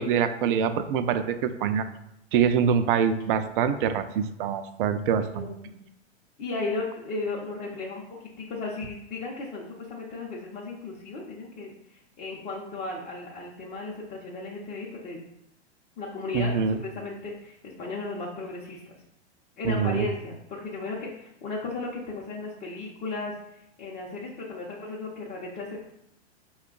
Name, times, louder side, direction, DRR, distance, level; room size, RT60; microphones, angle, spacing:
voice 1, 0.0-1.8 2.3-5.5 16.3-16.8 19.6-20.1, right 7 dB, 50° right, 10 dB, 0.5 m, -25 dB
voice 2, 5.3-5.7 6.4-15.2 16.0-18.8 19.6-25.9, left 3 dB, 25° left, -4 dB, 0.7 m, -35 dB
4.9 x 2.3 x 3.7 m, 0.82 s
hypercardioid pair, 115°, 34 cm